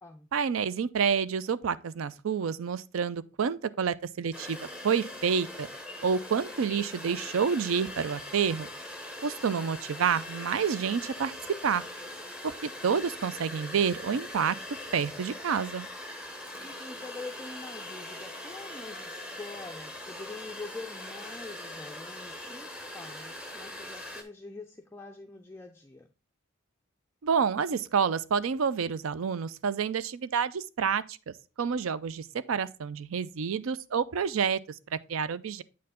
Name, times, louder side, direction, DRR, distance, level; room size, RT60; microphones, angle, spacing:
voice 1, 0.3-4.6 4.8-5.7 6.0-8.7 9.2-11.3 11.6-11.8 12.4-14.6 14.9-15.9 27.2-34.6 34.9-35.6, right 6 dB, 75° right, 0.4 m, -29 dB
sound 1, 4.3-24.2, left 1 dB, 5° right, 0.8 m, -42 dB
voice 2, 16.6-26.1, left 3 dB, 10° left, 0.3 m, -45 dB
8.4 x 4.6 x 3.6 m
head